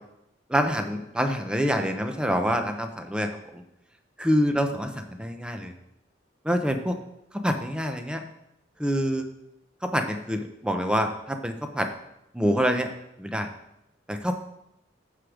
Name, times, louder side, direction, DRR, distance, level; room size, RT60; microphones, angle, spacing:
voice 1, 0.5-3.3 4.2-5.7 6.4-6.9 7.4-8.2 8.8-9.3 9.9-11.9 12.3-12.9 13.2-13.5 14.1-14.3, equal, 5° right, 6 dB, 0.7 m, -26 dB
14.0 x 4.9 x 5.0 m, 0.85 s
head